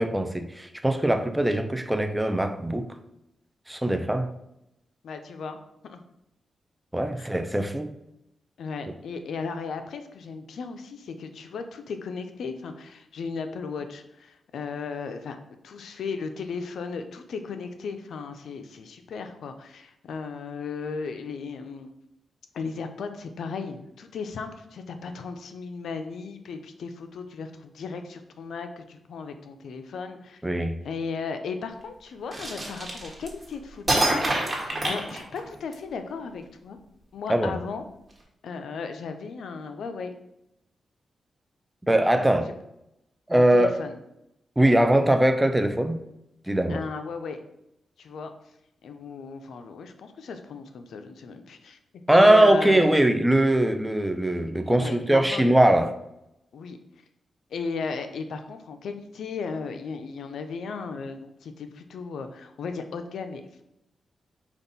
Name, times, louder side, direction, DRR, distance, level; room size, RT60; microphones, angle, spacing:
voice 1, 0.0-2.9 3.7-4.3 6.9-8.0 30.4-30.8 37.3-37.5 41.9-42.5 43.3-43.8 44.6-46.0 46.5-46.8 52.1-55.9, right 1 dB, 10° right, 7 dB, 0.4 m, -21 dB
voice 2, 5.0-5.6 5.8-6.0 7.1-7.3 8.6-15.4 15.6-21.9 22.5-30.4 30.8-34.1 34.4-36.8 37.1-37.8 38.4-40.1 43.3-43.9 46.7-47.4 48.0-48.3 48.8-51.8 52.1-52.9 54.7-55.6 56.5-56.8 57.5-63.6, left 5 dB, 80° left, 7 dB, 0.4 m, -36 dB
sound 1, 32.3-33.4 33.9-35.7, right 1 dB, 25° right, 1.3 m, -26 dB
5.2 x 2.4 x 4.0 m, 0.84 s
cardioid pair, 90°, 0 cm